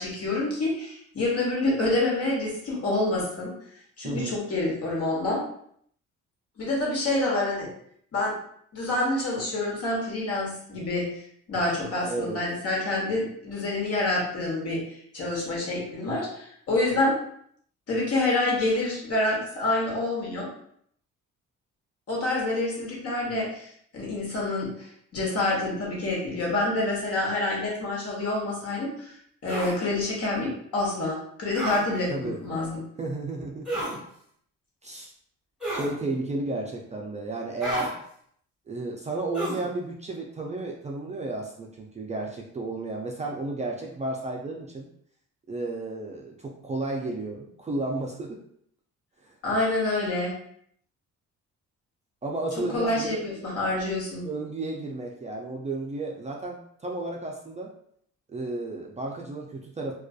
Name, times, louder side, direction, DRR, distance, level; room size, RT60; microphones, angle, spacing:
voice 1, 0.0-3.5 4.0-5.4 6.6-7.7 8.1-8.3 8.7-11.1 11.5-14.8 15.1-17.1 17.9-20.5 22.1-29.1 29.4-32.8 49.4-50.4 52.6-54.3, left 2 dB, 55° left, -3 dB, 1.1 m, -27 dB
voice 2, 4.0-4.4 12.1-12.4 32.1-32.4 33.0-34.0 34.8-35.1 35.7-37.9 38.7-44.9 45.5-48.4 49.2-49.3 52.2-53.5 54.2-57.7 58.3-59.9, right 2 dB, 25° right, -1 dB, 0.4 m, -33 dB
sound 1, 29.5-29.8 31.5-31.8 33.6-34.0 35.6-35.9 37.6-37.9 39.3-39.7, right 1 dB, ahead, 1.1 m, -31 dB
2.5 x 2.3 x 2.3 m, 0.66 s
cardioid pair, 90°, 30 cm